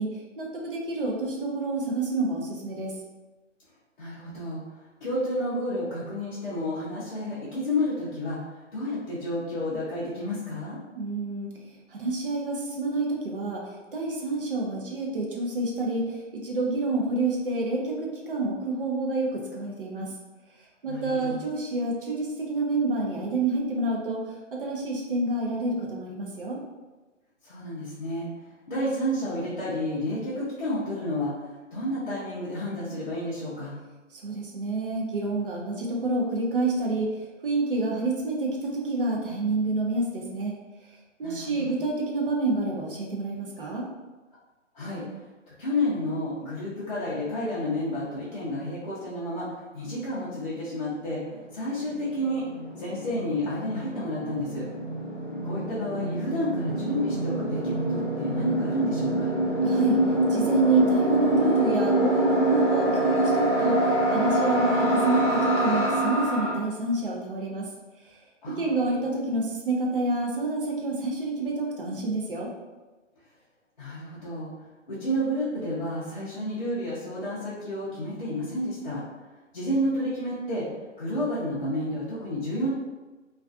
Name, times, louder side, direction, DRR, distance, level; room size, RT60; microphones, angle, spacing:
voice 1, 0.0-2.9 11.0-11.5 11.9-13.6 13.9-20.1 20.8-24.2 24.5-26.6 34.2-37.1 37.4-40.5 41.2-43.9 59.6-60.0 60.3-67.7 68.6-72.5, right 2 dB, 45° right, -2 dB, 0.5 m, -28 dB
voice 2, 4.0-4.6 5.0-8.4 8.7-10.8 20.9-21.4 27.4-28.3 28.7-31.3 31.7-33.7 41.2-41.7 44.7-45.0 45.5-51.2 51.5-52.5 52.8-54.6 55.4-59.3 68.4-68.9 73.8-74.5 74.9-79.0 79.5-80.7 81.0-82.7, left 1 dB, 40° left, -10 dB, 0.5 m, -30 dB
sound 1, 51.0-51.1 51.3-66.5, right 1 dB, 20° left, 0.9 m, -26 dB
2.4 x 2.3 x 2.3 m, 1.2 s
hypercardioid pair, 170°, 38 cm